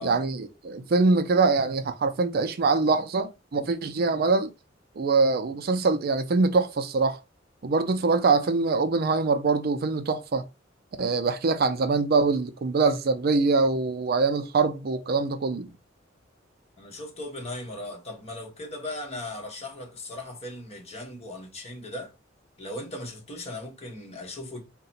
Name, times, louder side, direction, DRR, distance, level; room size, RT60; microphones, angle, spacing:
voice 1, 0.0-4.5 5.0-7.2 7.6-10.4 11.0-15.7, right 4 dB, 55° right, 0.4 m, -24 dB
voice 2, 16.8-22.1 22.6-24.6, left 1 dB, 35° left, 1.2 m, -38 dB
3.7 x 2.2 x 4.2 m
head